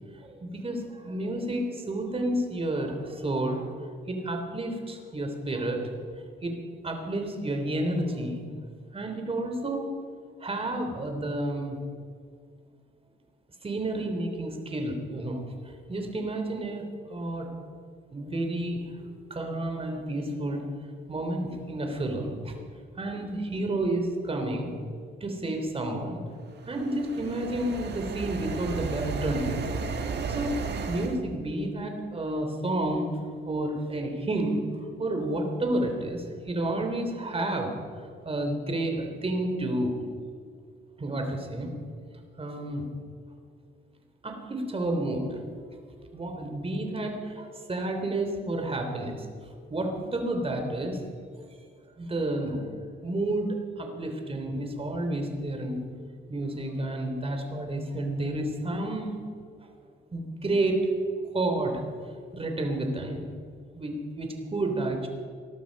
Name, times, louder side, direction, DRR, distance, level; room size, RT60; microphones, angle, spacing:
voice 1, 0.1-5.8 6.4-6.6 6.8-8.4 8.9-10.0 10.4-11.8 13.6-16.8 17.1-17.5 18.1-20.6 21.1-22.5 23.0-24.7 25.2-26.2 26.7-29.8 30.3-33.1 33.5-34.6 35.0-37.8 38.1-40.0 41.0-41.7 42.4-42.9 44.2-45.4 46.0-51.0 52.0-52.6 53.0-55.8 56.3-59.2 60.1-60.9 61.2-61.9 62.2-63.2 63.8-65.1, right 1 dB, 30° right, 4 dB, 3.1 m, -30 dB
sound 1, 26.5-31.2, right 5 dB, 55° right, 1.6 m, -34 dB
19.5 x 12.5 x 5.3 m, 2.1 s
cardioid pair, 90°, 20 cm